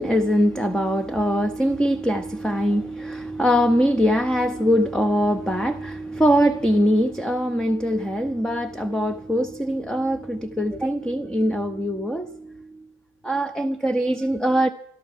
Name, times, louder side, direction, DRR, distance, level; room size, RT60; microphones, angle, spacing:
voice 1, 0.0-12.7 13.2-14.7, equal, ahead, 0.7 m, -22 dB
13.0 x 12.5 x 7.3 m
cardioid pair, 90°, 30 cm